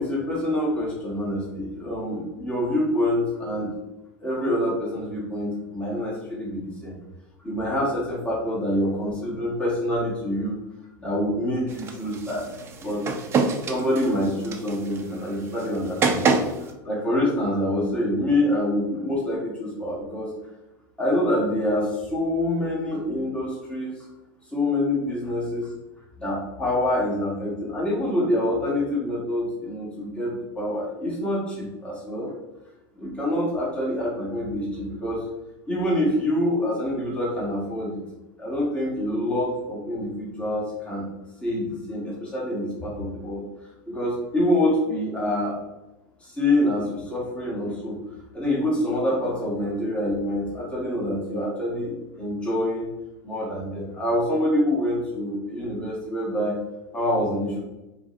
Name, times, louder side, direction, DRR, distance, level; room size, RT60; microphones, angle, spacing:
voice 1, 0.0-3.7 4.2-6.9 7.4-10.6 11.0-12.4 12.8-13.0 13.7-20.3 21.0-23.9 24.5-25.7 26.2-32.3 33.0-35.2 35.7-38.0 38.4-41.1 41.4-43.4 43.9-45.6 46.2-48.0 48.3-52.9 53.2-56.6 56.9-57.6, left 1 dB, 10° left, -6 dB, 1.4 m, -26 dB
sound 1, 11.7-16.7, right 4 dB, 25° right, 0.5 m, -27 dB
4.8 x 3.2 x 2.6 m, 0.98 s
supercardioid pair, 130°, 11 cm